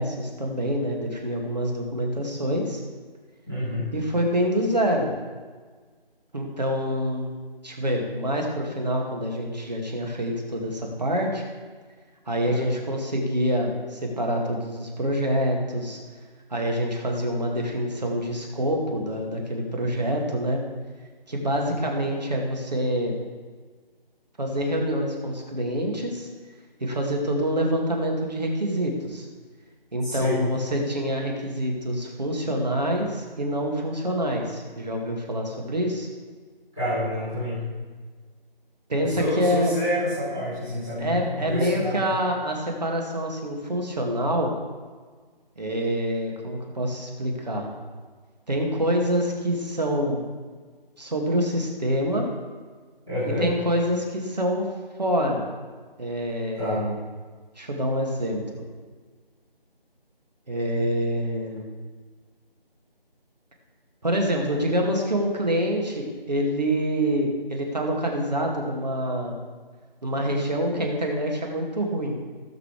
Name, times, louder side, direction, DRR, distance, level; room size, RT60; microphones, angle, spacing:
voice 1, 0.0-2.8 3.9-5.1 6.3-7.3 7.6-11.4 12.3-16.0 16.5-20.6 21.3-23.2 24.4-26.3 26.8-29.3 29.9-36.1 38.9-39.7 41.0-44.5 45.6-47.7 48.5-50.2 51.0-52.3 53.4-54.7 55.0-55.5 56.0-57.0 57.6-58.7 60.5-61.7 64.0-69.4 70.0-72.2, equal, 45° right, 0 dB, 2.1 m, -26 dB
voice 2, 3.5-3.9 12.4-12.7 21.6-21.7 30.0-30.4 36.7-37.6 39.0-41.2 41.5-42.0 53.1-53.5 56.6-56.8, left 1 dB, 5° right, -16 dB, 1.6 m, -28 dB
17.0 x 6.8 x 3.3 m, 1.5 s
figure-of-eight pair, 175°, 30 cm